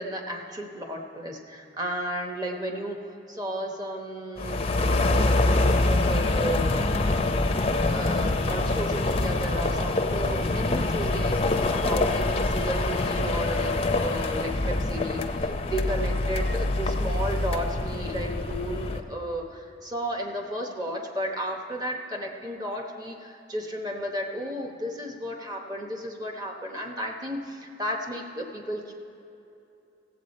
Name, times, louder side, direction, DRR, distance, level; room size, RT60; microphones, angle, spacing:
voice 1, 0.0-3.0 3.3-6.9 7.8-28.9, equal, 20° right, 2 dB, 1.0 m, -33 dB
sound 1, 4.4-19.0, left 2 dB, 30° left, 0.5 m, -25 dB
16.0 x 7.9 x 4.2 m, 2.7 s
head